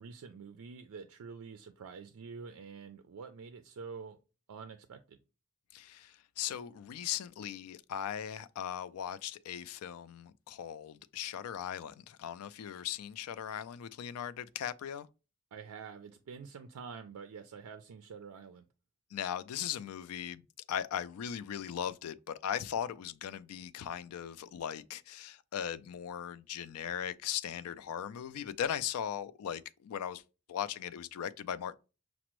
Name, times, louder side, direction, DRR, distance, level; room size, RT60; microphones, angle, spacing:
voice 1, 0.0-4.2 4.5-5.2 15.5-18.7, right 5 dB, 85° right, 0.4 m, -47 dB
voice 2, 5.7-15.1 19.1-20.4 20.7-30.2 30.5-31.8, left 9 dB, 80° left, 0.3 m, -38 dB
5.9 x 2.0 x 3.0 m
head